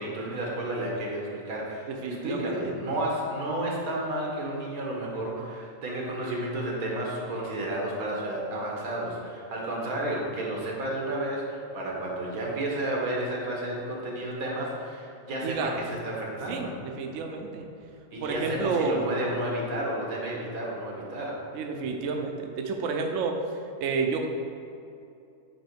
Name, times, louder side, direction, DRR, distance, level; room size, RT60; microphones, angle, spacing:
voice 1, 0.0-16.7 18.1-21.4, right 1 dB, 90° right, -2 dB, 1.6 m, -32 dB
voice 2, 1.9-2.7 15.4-16.0 16.5-17.6 18.2-19.3 21.5-23.4 23.8-24.3, right 4 dB, 65° right, 3 dB, 0.8 m, -30 dB
8.7 x 2.9 x 4.5 m, 2.6 s
omnidirectional pair, 1.5 m